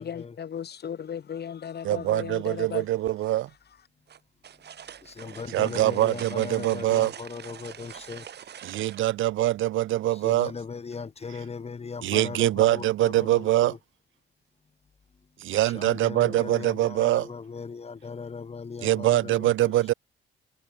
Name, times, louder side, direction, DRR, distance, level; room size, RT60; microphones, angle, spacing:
voice 1, 0.0-2.9, left 8 dB, 55° left, 8.0 m, -36 dB
voice 2, 1.8-3.5 5.5-7.1 8.6-10.5 11.3-11.4 12.0-13.8 15.4-17.3 18.8-19.9, right 15 dB, 80° right, 1.2 m, -24 dB
sound 1, 4.1-9.0, right 9 dB, 55° right, 3.0 m, -44 dB
voice 3, 5.2-8.2 10.2-12.8 13.2-13.4 15.8-19.2, left 5 dB, 30° left, 2.0 m, -38 dB
cardioid pair, 90°, 20 cm